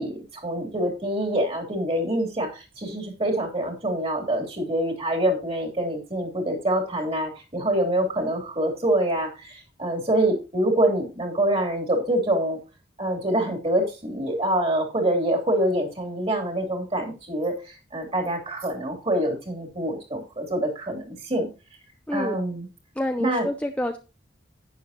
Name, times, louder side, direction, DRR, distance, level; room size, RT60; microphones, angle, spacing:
voice 1, 0.0-12.6 13.0-21.5 22.1-22.7 23.2-23.5, right 1 dB, 30° right, 2 dB, 3.1 m, -25 dB
voice 2, 23.0-24.0, left 1 dB, 5° left, 5 dB, 0.6 m, -27 dB
11.0 x 9.2 x 2.9 m, 0.30 s
head